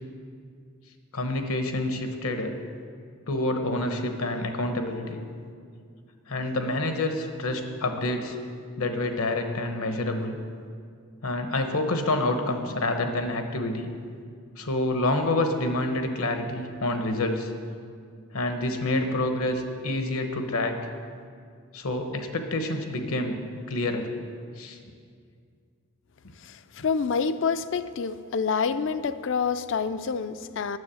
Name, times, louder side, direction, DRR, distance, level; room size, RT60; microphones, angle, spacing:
voice 1, 1.1-2.5 3.3-5.2 6.3-8.4 8.8-10.4 11.2-13.9 14.6-17.5 18.3-20.8 21.7-24.1 24.6-24.8 26.2-26.3, left 2 dB, 75° left, 6 dB, 1.1 m, -28 dB
voice 2, 26.4-30.8, left 5 dB, 55° left, 12 dB, 0.4 m, -27 dB
9.7 x 7.6 x 7.1 m, 2.2 s
head